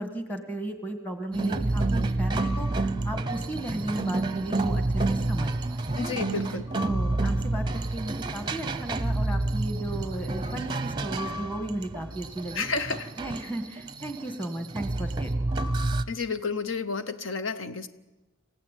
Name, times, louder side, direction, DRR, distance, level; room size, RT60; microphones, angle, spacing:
voice 1, 0.0-6.1 6.8-12.7 13.2-15.7, right 1 dB, 10° left, 7 dB, 1.8 m, -35 dB
sound 1, 1.3-16.0, right 2 dB, 20° right, 0.7 m, -29 dB
voice 2, 6.0-6.7 12.5-13.1 16.1-17.9, left 4 dB, 65° left, 10 dB, 0.8 m, -31 dB
27.5 x 16.0 x 9.2 m, 1.1 s
head